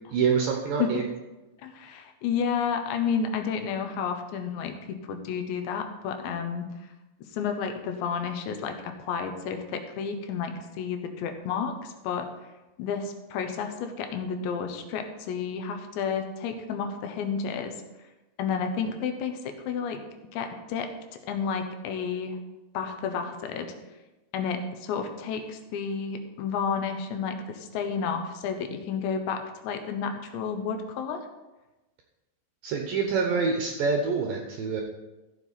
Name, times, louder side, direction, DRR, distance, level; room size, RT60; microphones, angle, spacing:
voice 1, 0.1-1.0 32.6-34.8, right 5 dB, 75° right, 2 dB, 2.1 m, -26 dB
voice 2, 1.6-4.8 5.1-6.7 7.3-12.3 12.8-17.7 18.4-20.0 20.3-20.9 21.3-22.4 22.7-23.7 24.3-31.3, left 6 dB, 80° left, 6 dB, 3.2 m, -31 dB
14.5 x 7.3 x 4.1 m, 1.1 s
omnidirectional pair, 5.1 m